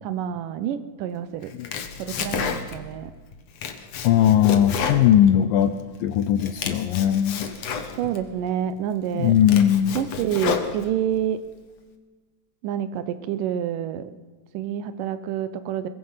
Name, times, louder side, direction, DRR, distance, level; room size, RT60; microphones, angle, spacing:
voice 1, 0.0-1.5 2.0-3.1 8.0-9.4 9.9-11.4 12.6-14.1 14.5-15.9, right 9 dB, 80° right, 12 dB, 1.9 m, -28 dB
Domestic sounds home sounds, 1.4-3.0 3.3-5.8 6.2-8.2 8.8-8.9 9.3-11.2, left 6 dB, 60° left, 1.7 m, -31 dB
voice 2, 4.0-5.8 6.0-7.5 9.2-10.0, left 10 dB, 80° left, 9 dB, 2.0 m, -19 dB
22.0 x 22.0 x 5.7 m, 1.4 s
omnidirectional pair, 4.9 m